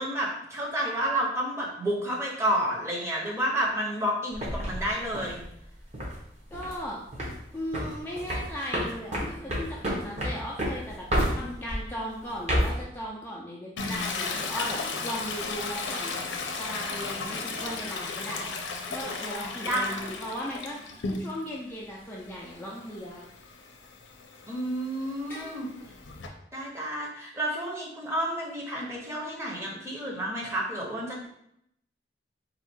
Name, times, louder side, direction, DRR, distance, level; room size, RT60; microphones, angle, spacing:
voice 1, 0.0-5.4 19.6-20.1 24.5-25.7 26.5-31.3, right 1 dB, 15° right, -3 dB, 0.9 m, -30 dB
sound 1, 4.3-6.2 6.5-6.8 7.1-7.4 7.7-11.8 12.3-12.8, equal, 40° right, 1.1 m, -29 dB
voice 2, 6.5-7.0 7.5-11.1 11.3-14.8 15.0-16.2 16.6-18.4 18.9-20.8 21.2-23.2 25.3-25.5, equal, 10° left, -5 dB, 0.5 m, -37 dB
Toilet flush, 13.8-21.6 22.0-26.3, left 4 dB, 90° left, 0.6 m, -35 dB
4.1 x 2.4 x 4.4 m, 0.75 s
head